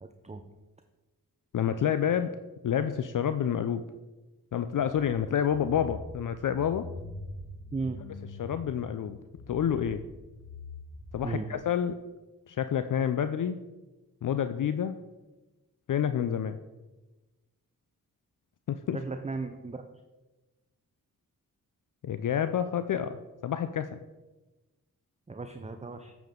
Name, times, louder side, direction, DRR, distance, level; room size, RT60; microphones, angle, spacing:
voice 1, 0.0-0.4 7.7-8.0 11.2-11.5 18.9-19.8 25.3-26.1, right 3 dB, 20° right, 6 dB, 0.6 m, -35 dB
voice 2, 1.5-2.3 2.6-3.8 4.5-6.9 8.4-9.2 9.5-10.0 11.1-12.0 12.5-13.6 14.2-15.0 15.9-16.6 18.7-19.0 22.0-23.2 23.4-24.0, left 9 dB, 60° left, 11 dB, 0.5 m, -28 dB
sound 1, 4.7-11.6, left 2 dB, 75° left, 1.6 m, -44 dB
9.1 x 7.3 x 3.8 m, 1.1 s
cardioid pair, 50°, 37 cm